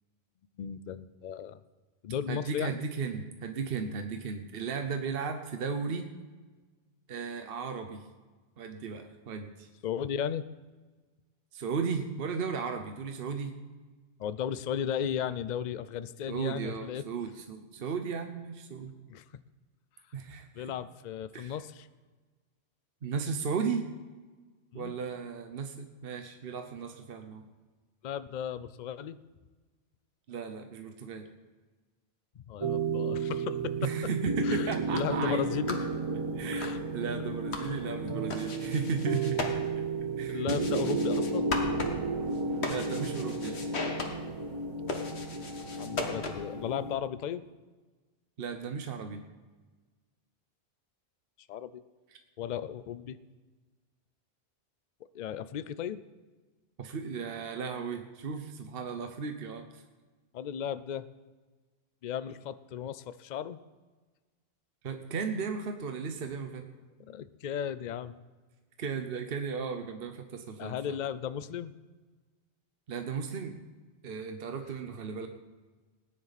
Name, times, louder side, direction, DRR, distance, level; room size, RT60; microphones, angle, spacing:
voice 1, 0.6-1.6 2.0-2.8 9.8-10.5 14.2-17.0 19.1-19.2 20.5-21.9 24.7-24.9 28.0-29.2 32.5-33.8 34.4-35.9 36.6-36.8 37.6-37.7 40.3-41.5 45.8-47.5 51.5-51.8 52.4-53.2 55.1-56.0 60.3-61.1 62.0-63.6 67.1-68.2 70.6-71.7, left 8 dB, 55° left, 14 dB, 0.6 m, -35 dB
voice 2, 2.3-6.1 7.1-8.0 8.6-9.7 11.5-13.5 16.3-18.9 20.1-20.7 21.3-21.6 23.0-23.8 24.7-27.5 30.3-31.3 33.8-35.4 36.4-39.4 40.2-40.5 42.6-43.6 48.4-49.2 56.8-59.8 64.8-66.6 68.8-71.0 72.9-73.5 74.0-75.3, right 5 dB, 60° right, 6 dB, 1.1 m, -35 dB
sound 1, 32.6-46.9, right 3 dB, 30° right, 0.7 m, -33 dB
sound 2, 34.6-46.6, left 3 dB, 75° left, 1.7 m, -39 dB
19.5 x 10.0 x 4.1 m, 1.3 s
omnidirectional pair, 1.1 m